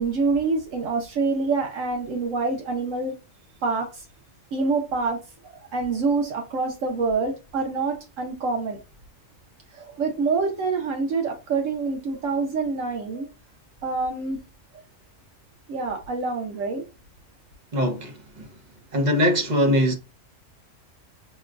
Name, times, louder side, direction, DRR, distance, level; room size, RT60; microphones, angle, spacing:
voice 1, 0.0-3.1 3.6-4.0 4.5-5.2 5.4-8.8 9.7-13.3 13.8-14.4 15.7-16.8, right 4 dB, 75° right, 1.2 m, -26 dB
voice 2, 17.7-18.5 18.9-19.9, equal, 40° right, 0.9 m, -22 dB
6.1 x 2.2 x 2.5 m
omnidirectional pair, 1.3 m